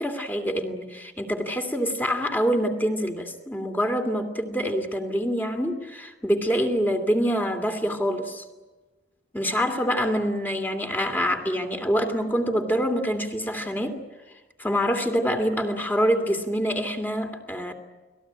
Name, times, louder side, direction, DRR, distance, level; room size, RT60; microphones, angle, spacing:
voice 1, 0.0-8.4 9.3-14.0 14.6-17.7, equal, 10° left, 5 dB, 2.6 m, -26 dB
30.0 x 20.0 x 9.0 m, 1.2 s
head